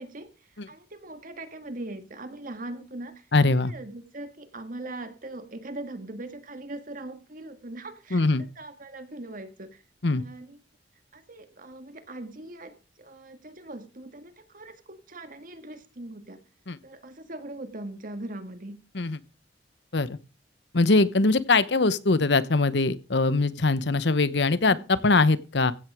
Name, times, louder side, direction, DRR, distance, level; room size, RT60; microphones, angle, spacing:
voice 1, 0.0-3.3 3.6-9.8 10.2-10.6 11.1-16.4 16.8-18.8 24.6-24.8, right 2 dB, 45° right, 1.7 m, -41 dB
voice 2, 3.3-3.7 8.1-8.4 10.0-10.2 16.7-16.8 18.9-19.2 19.9-20.2 20.7-25.7, left 3 dB, 65° left, 1.0 m, -22 dB
15.5 x 9.2 x 4.9 m
head